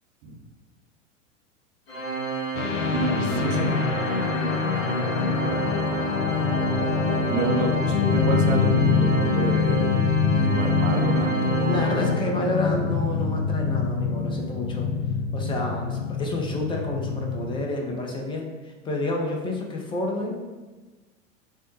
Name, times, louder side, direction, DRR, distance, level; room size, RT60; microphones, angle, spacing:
Organ, 1.9-12.6, right 3 dB, 50° left, 1.3 m, -30 dB
sound 1, 2.5-17.7, left 5 dB, 70° left, 0.5 m, -25 dB
voice 1, 2.9-3.8 7.3-9.9 10.4-12.4, right 3 dB, 40° right, 2 dB, 0.7 m, -29 dB
voice 2, 11.6-14.9 15.3-20.4, left 2 dB, 15° left, 1 dB, 0.5 m, -29 dB
6.2 x 2.1 x 3.0 m, 1.3 s
figure-of-eight pair, 85°, 39 cm